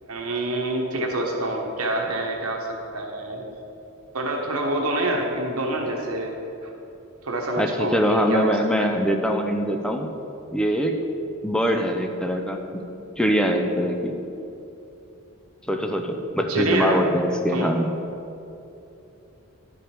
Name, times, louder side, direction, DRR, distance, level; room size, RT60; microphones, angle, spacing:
voice 1, 0.0-3.4 4.1-6.3 6.6-6.7 7.2-8.9 16.5-17.0 17.5-17.7, right 2 dB, 80° right, 1 dB, 1.2 m, -26 dB
voice 2, 7.6-10.1 10.5-11.0 11.4-12.8 13.2-14.2 15.7-17.9, equal, 5° left, 3 dB, 0.5 m, -23 dB
11.5 x 5.2 x 4.4 m, 2.8 s
head